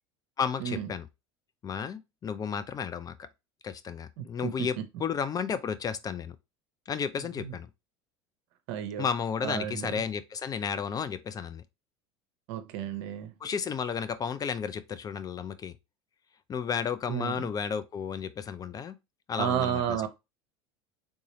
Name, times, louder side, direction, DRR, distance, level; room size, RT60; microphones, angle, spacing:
voice 1, 0.4-1.1 1.6-3.3 3.6-6.4 6.9-7.7 9.0-11.6 13.4-15.7 16.5-19.0 19.3-20.0, left 7 dB, 25° left, 0.4 m, -33 dB
voice 2, 4.2-4.7 7.4-7.5 8.7-9.1 9.4-10.0 12.5-13.3 17.1-17.5 19.4-20.1, right 9 dB, 65° right, 0.7 m, -32 dB
3.7 x 2.7 x 2.9 m
hypercardioid pair, 85°, 14 cm